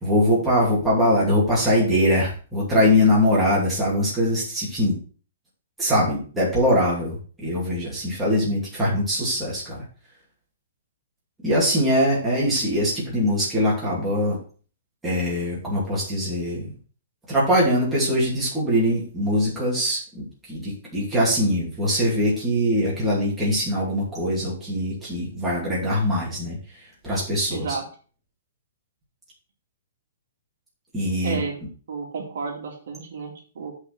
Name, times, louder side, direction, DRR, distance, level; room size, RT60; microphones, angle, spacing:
voice 1, 0.0-5.0 5.8-9.8 11.4-14.4 15.0-16.7 17.3-27.8 30.9-31.4, equal, 5° right, -7 dB, 2.6 m, -22 dB
voice 2, 27.5-27.8 31.2-31.6 31.9-33.7, right 5 dB, 60° right, 1 dB, 2.3 m, -31 dB
7.7 x 4.8 x 5.9 m, 0.39 s
hypercardioid pair, 180°, 0 cm